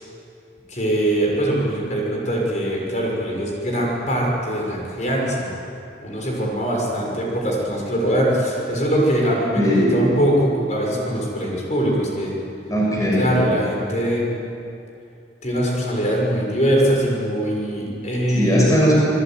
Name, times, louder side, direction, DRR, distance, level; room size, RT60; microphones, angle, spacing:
voice 1, 0.7-5.5 6.0-12.3 13.2-14.3 15.4-18.7, equal, 40° left, -2 dB, 6.7 m, -22 dB
voice 2, 9.6-10.0 12.7-13.3 18.3-18.9, equal, 20° left, -4 dB, 6.0 m, -18 dB
27.5 x 20.5 x 9.5 m, 2.6 s
head